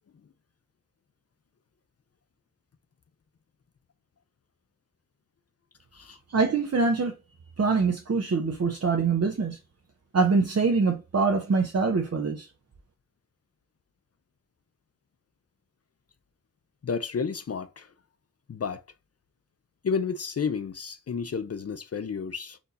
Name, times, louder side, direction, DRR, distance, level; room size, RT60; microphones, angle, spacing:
voice 1, 6.3-7.1 7.6-9.6 10.1-12.5, right 4 dB, 50° right, 0.7 m, -24 dB
voice 2, 16.8-17.9 18.5-18.8 19.8-22.6, left 5 dB, 50° left, 0.4 m, -31 dB
4.3 x 2.7 x 3.9 m
wide cardioid pair, 80°, 32 cm